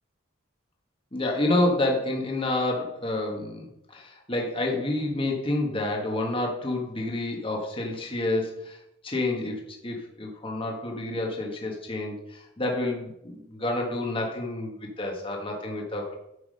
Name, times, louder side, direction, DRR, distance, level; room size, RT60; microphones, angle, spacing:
voice 1, 1.1-16.1, left 2 dB, 25° left, 0 dB, 1.5 m, -29 dB
9.8 x 6.0 x 5.3 m, 0.84 s
head